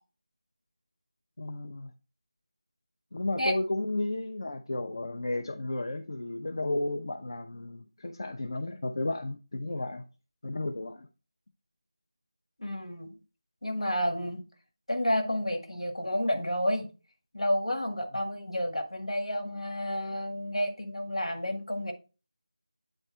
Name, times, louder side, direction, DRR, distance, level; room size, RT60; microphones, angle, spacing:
voice 1, 1.4-1.9 3.1-10.0 10.4-11.1, left 2 dB, 50° left, 0.6 m, -33 dB
voice 2, 12.6-13.2 13.6-14.4 14.9-16.9 17.3-21.9, equal, 85° left, 1.7 m, -30 dB
9.1 x 3.2 x 4.4 m
figure-of-eight pair, 165°, 3 cm